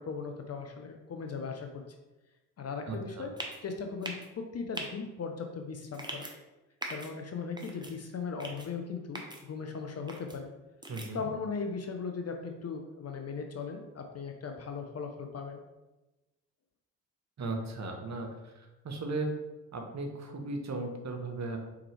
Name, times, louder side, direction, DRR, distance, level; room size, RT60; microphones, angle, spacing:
voice 1, 0.0-1.8 2.6-3.3 3.6-6.3 6.9-10.5 11.1-15.6, left 5 dB, 35° left, 4 dB, 0.6 m, -38 dB
voice 2, 2.9-3.3 10.9-11.3 17.4-18.5 18.8-19.3 19.7-21.6, right 2 dB, 35° right, 4 dB, 0.9 m, -36 dB
sound 1, 3.4-3.6 4.0-4.3 4.7-4.9 5.9-6.3 6.8-7.1 7.6-7.9 8.4-8.7 9.1-9.4 10.1-10.4 10.8-11.1, right 1 dB, 10° right, 0.9 m, -40 dB
4.5 x 3.6 x 3.3 m, 1.0 s
hypercardioid pair, 45°, 46 cm